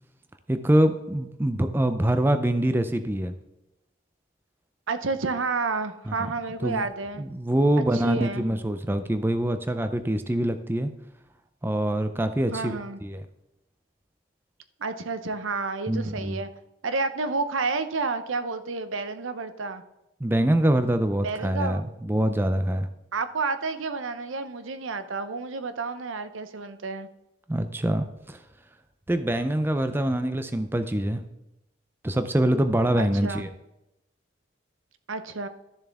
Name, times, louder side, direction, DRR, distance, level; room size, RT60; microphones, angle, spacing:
voice 1, 0.5-3.3 6.1-6.3 6.6-6.9 7.2-10.9 11.6-13.2 15.9-16.4 20.2-22.9 27.5-28.4 29.1-31.2 32.0-33.5, right 1 dB, 10° right, 9 dB, 0.4 m, -24 dB
voice 2, 4.9-7.2 7.9-8.4 12.5-13.0 14.8-16.5 16.8-19.8 21.2-21.8 23.1-27.1 33.0-33.5 35.1-35.5, right 4 dB, 85° right, 11 dB, 0.8 m, -30 dB
12.5 x 6.9 x 3.5 m, 0.91 s
head